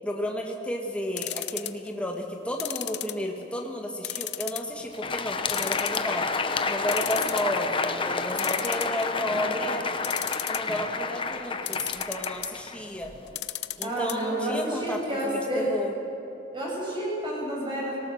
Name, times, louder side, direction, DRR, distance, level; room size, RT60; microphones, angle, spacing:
voice 1, 0.0-6.3 6.7-9.9 10.5-13.1 13.8-15.9, equal, 5° left, 0 dB, 1.5 m, -32 dB
sound 1, 1.2-1.9 2.6-3.6 4.0-4.7 5.1-5.2 5.5-6.3 6.6-6.7 6.9-7.5 8.4-9.3 10.0-10.8 11.7-12.5 13.3-14.1 14.4-14.5 14.8-14.9, left 14 dB, 65° left, 0.7 m, -33 dB
Crowd, 4.8-13.3, left 4 dB, 30° left, 0.9 m, -30 dB
voice 2, 13.8-15.7 16.5-18.0, right 1 dB, 25° right, -5 dB, 6.9 m, -30 dB
24.5 x 18.5 x 6.4 m, 3.0 s
head